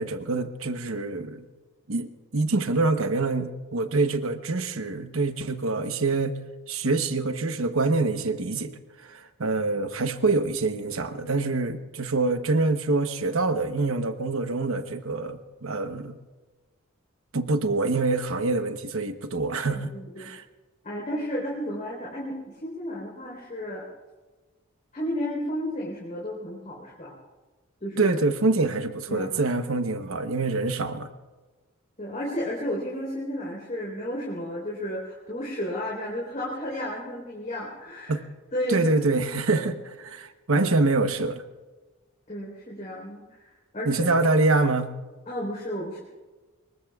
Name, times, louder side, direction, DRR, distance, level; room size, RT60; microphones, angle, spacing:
voice 1, 0.0-1.5 1.9-6.4 6.7-8.7 9.0-16.1 17.3-19.9 20.2-20.4 28.0-31.1 38.1-38.2 38.7-41.4 43.8-44.9, right 3 dB, 90° right, 9 dB, 1.0 m, -25 dB
voice 2, 19.9-20.3 20.8-23.8 24.9-27.1 27.8-28.1 29.1-29.3 32.0-38.2 38.5-38.9 39.5-39.6 42.3-43.2 43.7-44.1 45.3-46.0, equal, 40° left, -4 dB, 4.0 m, -32 dB
26.5 x 22.5 x 2.4 m, 1.3 s
head